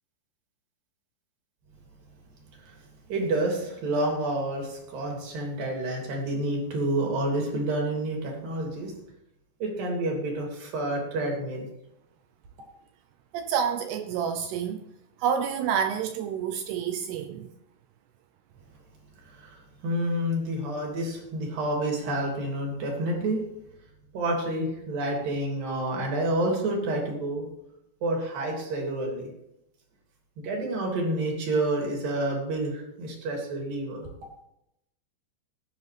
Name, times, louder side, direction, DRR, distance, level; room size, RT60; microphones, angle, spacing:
voice 1, 3.1-8.9 9.6-11.7 19.2-23.4 24.1-27.5 28.0-29.3 30.4-34.1, right 1 dB, 50° right, 0 dB, 4.1 m, -29 dB
voice 2, 13.3-14.8 15.2-17.5, right 8 dB, 90° right, 9 dB, 2.3 m, -28 dB
18.5 x 9.4 x 3.4 m, 0.83 s
omnidirectional pair, 5.4 m